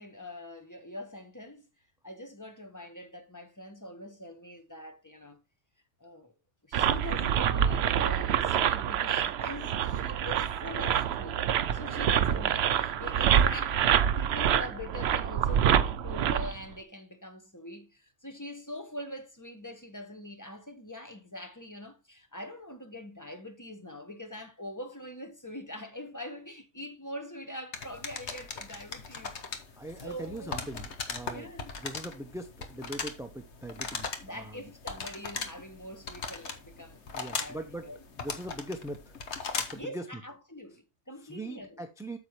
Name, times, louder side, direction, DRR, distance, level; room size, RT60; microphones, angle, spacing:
voice 1, 0.0-1.7 2.0-5.4 6.0-6.3 6.7-11.4 11.7-29.3 30.0-30.6 31.3-31.7 34.2-38.0 39.7-41.8, left 1 dB, 15° left, 1.2 m, -43 dB
sound 1, 6.7-16.6, right 9 dB, 65° right, 0.8 m, -26 dB
sound 2, 27.7-39.9, left 5 dB, 65° left, 1.3 m, -39 dB
voice 2, 29.8-31.5 31.8-34.7 37.1-37.8 38.2-39.1 39.6-40.2 41.2-42.2, right 1 dB, 5° right, 0.6 m, -41 dB
8.6 x 7.0 x 3.1 m
omnidirectional pair, 1.2 m